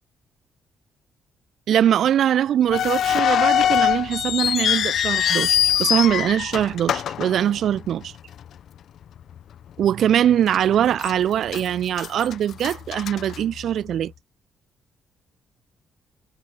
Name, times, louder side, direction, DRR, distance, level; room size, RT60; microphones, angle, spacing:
voice 1, 1.7-8.1 9.8-14.1, right 10 dB, 65° right, 3.6 m, -22 dB
sound 1, 2.7-8.0 8.3-8.4 9.2-9.4 9.8-9.9 10.5-11.1 11.5-13.9, left 10 dB, 60° left, 6.4 m, -23 dB
cardioid pair, 135°, 0 cm